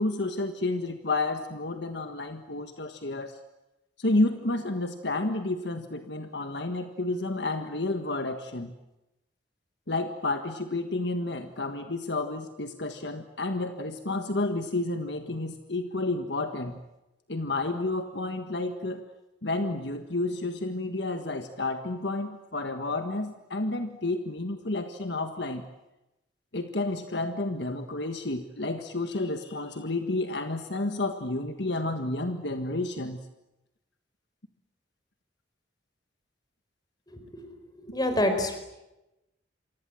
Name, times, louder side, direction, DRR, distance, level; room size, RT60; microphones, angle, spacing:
voice 1, 0.0-3.4 4.0-8.7 9.9-16.8 17.3-19.0 19.4-25.6 26.5-33.2, left 2 dB, 60° left, 7 dB, 1.6 m, -30 dB
voice 2, 37.1-37.5 37.8-38.6, left 1 dB, 20° left, 7 dB, 4.7 m, -28 dB
28.5 x 24.0 x 7.8 m, 0.94 s
head